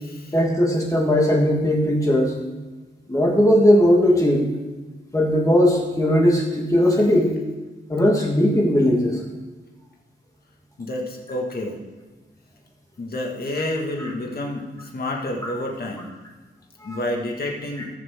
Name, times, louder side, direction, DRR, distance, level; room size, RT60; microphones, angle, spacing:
voice 1, 0.3-2.4 3.1-4.4 5.1-7.3 7.9-9.2 15.4-15.5 16.9-17.0, equal, 15° left, -2 dB, 1.8 m, -18 dB
voice 2, 10.8-11.8 13.0-16.1 16.8-17.9, left 1 dB, 50° left, -1 dB, 2.1 m, -29 dB
19.0 x 7.2 x 3.8 m, 1.2 s
wide cardioid pair, 150°, 20 cm